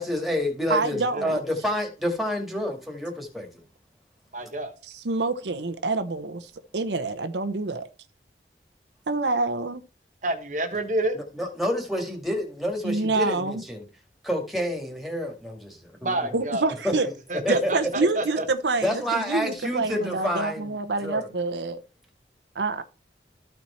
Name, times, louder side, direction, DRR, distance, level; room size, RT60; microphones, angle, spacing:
voice 1, 0.0-3.5 11.1-13.8 14.2-16.4 16.8-16.9 17.5-17.7 18.8-20.7 21.0-21.3, left 1 dB, ahead, 1.8 m, -28 dB
voice 2, 0.7-1.4 4.9-7.9 9.1-9.8 12.8-13.6 16.3-17.1 17.5-21.8 22.5-22.8, right 3 dB, 80° right, 0.8 m, -27 dB
voice 3, 4.3-4.7 10.2-11.2 16.0-16.7 17.3-18.4, right 2 dB, 45° right, 1.3 m, -29 dB
13.5 x 4.5 x 4.2 m
head